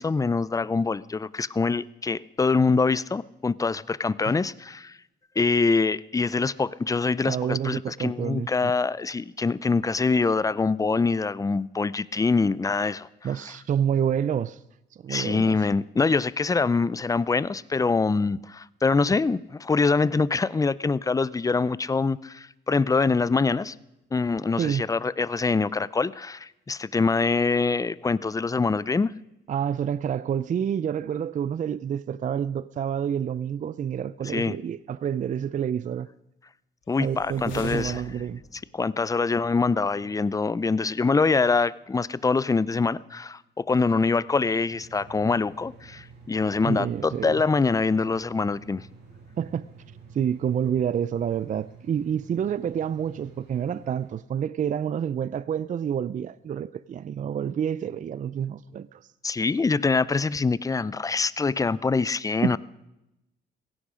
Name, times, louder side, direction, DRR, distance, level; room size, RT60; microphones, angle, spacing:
voice 1, 0.0-5.0 5.4-13.3 15.1-23.7 24.1-29.1 34.3-34.6 36.9-38.0 38.5-48.9 59.2-62.6, left 4 dB, 15° left, 0.5 m, -24 dB
voice 2, 7.2-8.7 13.2-14.6 15.0-15.6 24.6-24.8 29.5-36.1 37.0-38.4 46.6-47.4 49.4-49.6 50.1-59.0 62.4-62.6, right 8 dB, 40° right, 0.4 m, -28 dB
sound 1, 36.9-38.7, left 5 dB, 75° left, 3.4 m, -42 dB
sound 2, 44.7-54.1, right 4 dB, 65° right, 6.3 m, -49 dB
16.5 x 15.5 x 5.0 m
cardioid pair, 90°, 20 cm